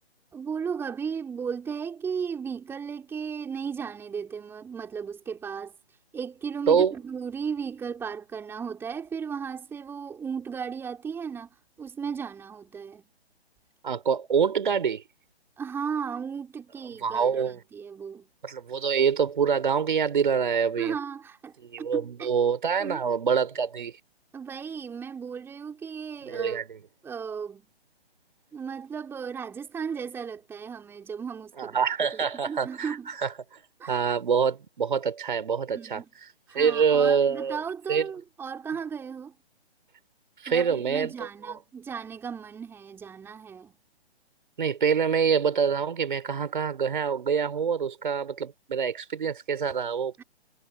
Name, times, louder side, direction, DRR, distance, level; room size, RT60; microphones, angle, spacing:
voice 1, 0.3-5.8 6.1-13.0 15.6-18.3 20.8-22.3 22.8-23.0 24.3-26.7 27.0-27.7 28.5-31.8 32.1-33.1 33.8-34.0 35.7-36.1 36.5-39.3 40.5-43.7 50.2-50.3, right 6 dB, 5° right, 4.4 m, -35 dB
voice 2, 13.8-15.0 17.0-17.6 18.4-20.9 21.6-23.9 26.3-26.8 31.6-33.0 33.2-33.3 33.8-36.0 36.5-37.6 37.9-38.0 40.4-41.1 44.6-50.2, right 6 dB, 50° right, 4.5 m, -25 dB
figure-of-eight pair, 140°, 33 cm